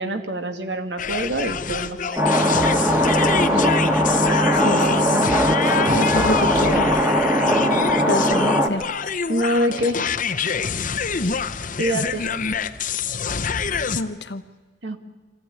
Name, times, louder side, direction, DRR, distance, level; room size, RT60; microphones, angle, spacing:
voice 1, 0.0-3.3 9.3-10.0 11.8-12.3 14.8-15.0, equal, 70° right, 7 dB, 2.1 m, -26 dB
sound 1, 1.0-14.0, left 6 dB, 45° left, 0.9 m, -26 dB
sound 2, 2.2-8.7, equal, 15° right, 1.7 m, -19 dB
voice 2, 4.6-5.2 5.6-6.9 8.1-8.8 13.9-14.4, left 2 dB, 70° left, 10 dB, 1.2 m, -27 dB
25.5 x 15.5 x 9.6 m, 1.4 s
head